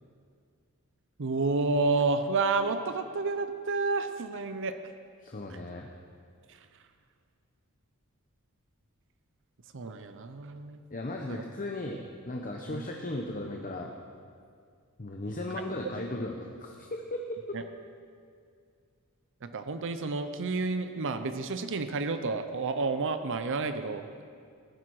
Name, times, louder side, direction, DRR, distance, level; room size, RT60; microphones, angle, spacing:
voice 1, 1.2-4.7 6.5-6.7 9.7-10.8 11.3-11.4 12.7-12.9 17.5-17.6 19.4-24.2, right 3 dB, 60° right, 9 dB, 0.7 m, -30 dB
voice 2, 5.2-5.9 10.9-13.9 15.0-17.2, left 1 dB, 40° left, 1 dB, 0.9 m, -36 dB
18.5 x 10.5 x 4.8 m, 2.2 s
head